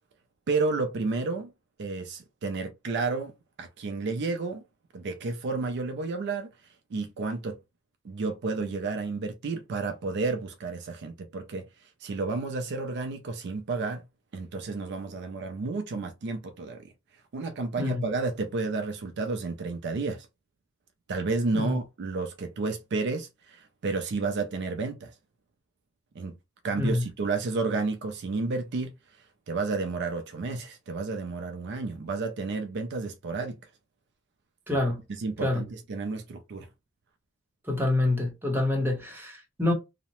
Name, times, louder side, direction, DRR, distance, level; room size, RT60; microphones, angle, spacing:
voice 1, 0.5-1.5 1.8-3.3 3.6-4.6 4.9-6.5 6.9-7.6 8.0-14.0 14.3-16.9 17.3-20.3 21.1-25.1 26.1-26.3 26.6-28.9 29.5-33.6 34.7-34.8 35.2-36.7, right 3 dB, 55° right, 0.4 m, -31 dB
voice 2, 34.7-35.0 35.4-35.6 37.7-39.7, left 2 dB, 10° right, 0.8 m, -26 dB
2.7 x 2.0 x 2.9 m
head